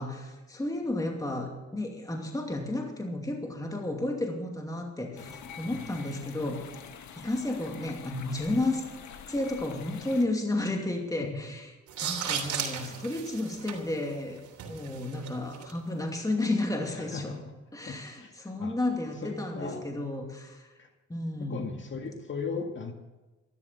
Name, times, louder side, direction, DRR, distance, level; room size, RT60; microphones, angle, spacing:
voice 1, 0.0-6.6 7.2-8.8 9.3-11.7 12.0-14.4 14.7-17.3 17.7-20.7 21.1-21.6, left 2 dB, 10° left, 1 dB, 2.6 m, -32 dB
sound 1, 5.2-10.2, left 7 dB, 70° left, 1.8 m, -46 dB
sound 2, 11.9-15.7, right 8 dB, 75° right, 3.2 m, -36 dB
voice 2, 12.3-13.1 16.9-17.5 17.9-18.8 19.2-19.9 20.8-20.9 21.5-22.9, left 4 dB, 40° left, 4 dB, 2.0 m, -38 dB
13.5 x 12.5 x 7.0 m, 1.1 s
cardioid pair, 90°, 30 cm